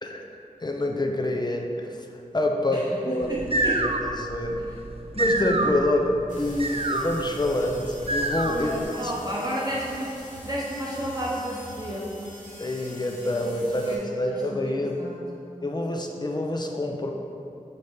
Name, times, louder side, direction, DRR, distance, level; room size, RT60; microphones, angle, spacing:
voice 1, 0.0-2.1 2.3-4.6 5.2-9.1 12.6-15.1 15.6-17.1, left 1 dB, 30° left, 2 dB, 0.6 m, -27 dB
voice 2, 2.7-3.8 5.7-5.9 8.4-10.2 10.4-12.4 13.6-15.5, equal, 30° right, -6 dB, 0.9 m, -32 dB
sound 1, 3.2-8.8, right 2 dB, 45° right, 0.5 m, -28 dB
sound 2, 6.3-13.9, left 1 dB, 65° left, 1.1 m, -46 dB
sound 3, 6.7-6.8 7.6-7.9 8.4-8.7 9.0-9.4 9.7-10.0 10.3-11.4 11.7-12.0, left 2 dB, 15° left, 1.5 m, -46 dB
7.9 x 4.2 x 3.4 m, 2.7 s
wide cardioid pair, 45°, 14 cm